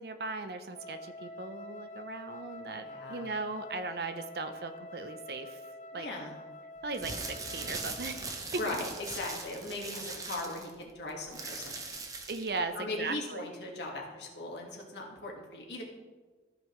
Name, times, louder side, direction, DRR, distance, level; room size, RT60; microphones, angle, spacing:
voice 1, 0.0-5.6 5.9-6.1 6.8-8.3 8.6-8.8 12.3-13.4, right 3 dB, 60° right, 9 dB, 0.6 m, -38 dB
Wind instrument woodwind instrument, 0.7-8.4, left 1 dB, 45° left, 0.5 m, -47 dB
voice 2, 2.8-3.3 6.0-6.3 8.6-12.0 12.7-15.8, left 2 dB, 80° left, -1 dB, 1.7 m, -39 dB
sound 1, 6.8-12.6, right 3 dB, 20° right, 0.8 m, -40 dB
14.0 x 5.4 x 3.1 m, 1.4 s
head